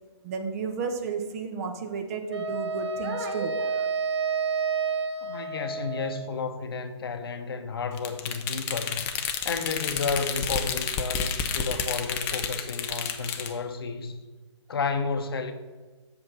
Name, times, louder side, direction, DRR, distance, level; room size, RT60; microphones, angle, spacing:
voice 1, 0.2-3.9, right 5 dB, 30° right, 0.8 m, -32 dB
Wind instrument woodwind instrument, 2.3-6.4, right 5 dB, 60° right, 0.6 m, -30 dB
voice 2, 5.2-9.1 9.4-14.2 14.7-15.5, left 4 dB, 50° left, 0.8 m, -32 dB
sound 1, 8.0-13.5, left 7 dB, 15° left, 0.4 m, -30 dB
6.9 x 5.1 x 6.0 m
figure-of-eight pair, 130°, 16 cm